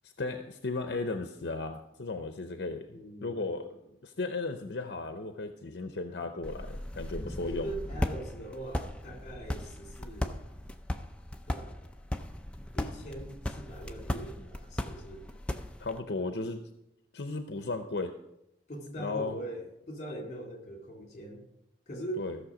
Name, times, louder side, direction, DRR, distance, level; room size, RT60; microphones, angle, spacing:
voice 1, 0.0-7.7 15.8-16.6 17.1-18.1 19.0-19.4 22.2-22.4, left 3 dB, 70° left, 6 dB, 0.7 m, -35 dB
voice 2, 2.9-3.5 7.4-10.4 11.5-11.7 12.8-15.2 18.7-21.4 21.9-22.2, right 1 dB, 40° left, 1 dB, 2.7 m, -41 dB
sound 1, 6.4-16.0, left 1 dB, 5° left, 0.5 m, -37 dB
14.5 x 6.6 x 5.0 m, 0.84 s
head